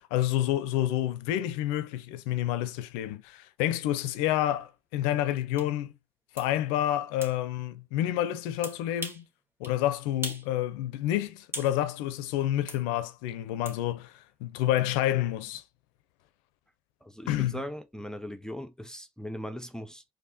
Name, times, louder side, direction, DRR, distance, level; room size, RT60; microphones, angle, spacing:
voice 1, 0.1-5.9 6.3-9.3 9.6-15.6 17.3-17.6, left 13 dB, 80° left, 0.5 m, -29 dB
sound 1, 5.6-5.7 6.4-6.5 7.2-7.4 8.6-9.3 9.6-9.8 10.2-10.5 10.8-11.8 12.7-12.8 13.7-13.8, right 1 dB, 20° right, 1.9 m, -39 dB
voice 2, 17.0-20.0, equal, 5° left, 0.6 m, -39 dB
4.3 x 2.7 x 3.8 m
hypercardioid pair, 55°, 13 cm